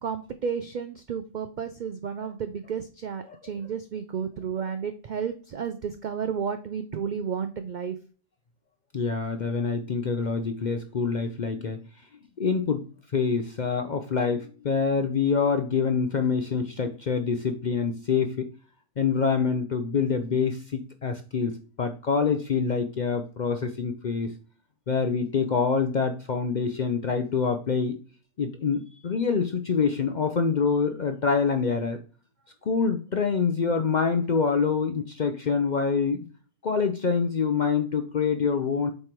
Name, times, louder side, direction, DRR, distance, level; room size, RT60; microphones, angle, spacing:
voice 1, 0.0-8.0, right 7 dB, 70° right, 8 dB, 0.4 m, -32 dB
voice 2, 8.9-11.8 12.4-12.8 13.1-18.5 19.0-24.3 24.9-28.0 28.4-32.0 32.7-36.2 36.6-38.9, left 5 dB, 55° left, 7 dB, 0.5 m, -26 dB
7.8 x 3.3 x 4.4 m, 0.40 s
omnidirectional pair, 1.4 m